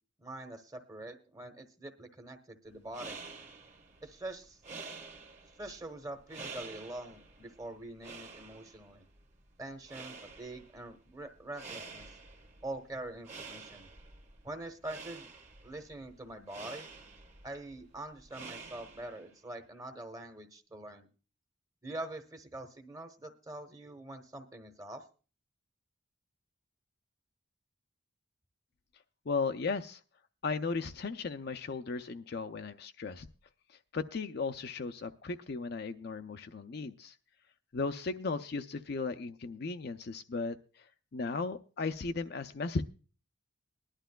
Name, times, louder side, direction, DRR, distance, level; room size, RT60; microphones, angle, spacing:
voice 1, 0.2-3.2 4.0-4.6 5.5-9.1 9.6-12.1 12.6-13.9 14.4-15.3 15.6-16.9 17.4-21.1 21.8-25.0, right 2 dB, 15° right, 7 dB, 1.0 m, -44 dB
sound 1, 2.7-19.3, right 4 dB, 35° right, 1.3 m, -49 dB
voice 2, 29.3-30.0 30.4-33.3 33.9-37.1 37.7-40.5 41.1-42.8, left 4 dB, 50° left, 8 dB, 0.5 m, -36 dB
20.5 x 11.5 x 2.2 m, 0.36 s
head